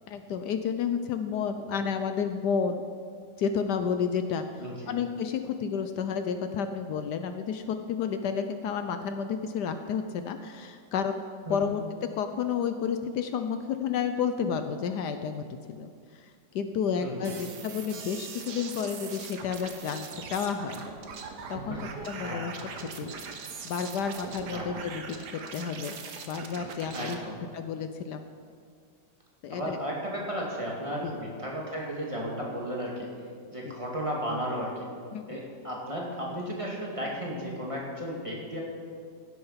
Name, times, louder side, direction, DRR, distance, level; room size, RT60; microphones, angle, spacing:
voice 1, 0.1-2.8 3.4-11.2 11.5-11.8 12.1-20.9 21.5-21.8 22.1-22.5 22.9-23.1 23.6-25.0 25.5-26.0 26.2-27.2 27.5-28.2 29.4-29.8 31.0-31.2 33.7-33.8 35.1-35.4, left 6 dB, 75° left, 8 dB, 1.2 m, -31 dB
voice 2, 4.6-5.0 11.5-11.8 17.0-17.5 21.7-21.9 22.2-22.4 24.5-24.8 26.9-27.4 29.5-33.1 33.5-34.9 35.3-38.6, equal, 20° right, -3 dB, 2.1 m, -34 dB
sound 1, 17.2-27.1, right 5 dB, 70° right, 1.6 m, -41 dB
16.0 x 7.8 x 5.7 m, 2.1 s
omnidirectional pair, 1.9 m